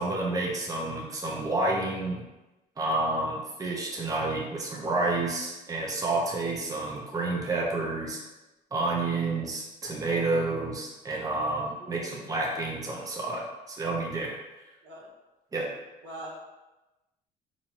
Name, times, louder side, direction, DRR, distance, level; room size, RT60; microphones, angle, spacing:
voice 1, 0.0-2.2 2.8-8.2 8.7-14.4 15.5-15.7, right 2 dB, 20° right, -1 dB, 0.6 m, -29 dB
voice 2, 11.8-12.3 14.8-15.1 16.0-16.3, right 1 dB, 85° right, -5 dB, 1.4 m, -43 dB
4.4 x 2.7 x 2.8 m, 1.0 s
cardioid pair, 110°, 17 cm